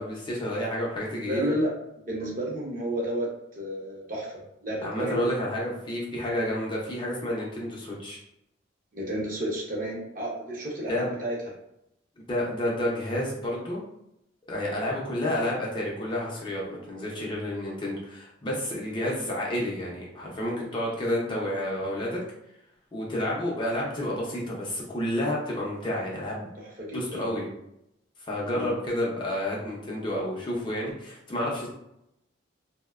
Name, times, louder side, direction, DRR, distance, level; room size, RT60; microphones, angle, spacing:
voice 1, 0.0-1.6 4.8-8.2 10.9-11.1 12.3-13.8 14.5-22.2 22.9-26.5 26.9-27.5 28.2-31.7, left 1 dB, 25° left, -4 dB, 0.4 m, -30 dB
voice 2, 1.1-1.7 2.0-3.3 3.5-5.3 8.9-11.3 26.6-27.3 28.5-28.8, right 1 dB, 45° right, -3 dB, 0.6 m, -31 dB
2.6 x 2.0 x 2.3 m, 0.81 s
head